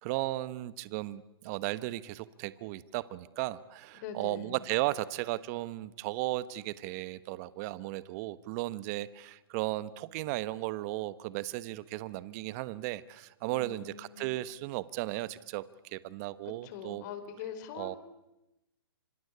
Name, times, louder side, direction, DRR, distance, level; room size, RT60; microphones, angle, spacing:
voice 1, 0.0-17.0 17.7-18.0, right 17 dB, 40° right, 16 dB, 1.1 m, -35 dB
voice 2, 3.9-4.5 13.5-14.3 16.6-18.0, left 8 dB, 45° left, 11 dB, 4.7 m, -43 dB
26.5 x 26.5 x 8.5 m, 0.93 s
hypercardioid pair, 125°, 13 cm